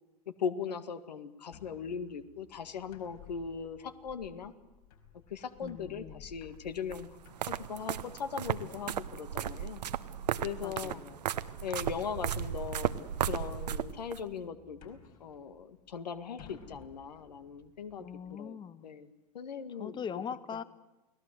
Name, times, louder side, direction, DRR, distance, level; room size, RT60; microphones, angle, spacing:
voice 1, 0.4-4.5 5.3-7.2 7.5-9.8 10.4-11.0 11.6-12.9 13.2-18.6 18.8-19.1 19.3-20.0, left 6 dB, 80° left, 10 dB, 2.0 m, -39 dB
sound 1, 1.5-18.3, left 8 dB, 60° left, 5.0 m, -57 dB
voice 2, 5.6-6.2 10.6-11.2 18.0-18.9 19.7-20.6, left 7 dB, 20° left, 17 dB, 0.9 m, -41 dB
sound 2, 6.9-14.2, right 9 dB, 80° right, 1.1 m, -35 dB
29.5 x 19.5 x 7.9 m, 1.0 s
hypercardioid pair, 95°, 21 cm